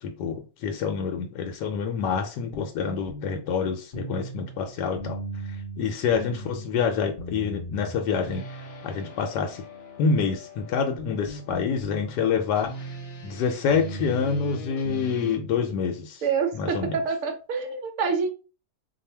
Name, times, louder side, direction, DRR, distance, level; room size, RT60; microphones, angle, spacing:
voice 1, 0.0-5.2 5.8-8.4 8.8-9.6 10.0-12.8 13.2-16.2 16.5-17.0, left 6 dB, 80° left, 3 dB, 1.2 m, -27 dB
sound 1, 2.5-15.4, right 1 dB, 55° left, 0.5 m, -38 dB
voice 2, 16.2-18.3, right 5 dB, 60° right, 5 dB, 1.0 m, -26 dB
2.7 x 2.6 x 4.3 m, 0.34 s
omnidirectional pair, 1.8 m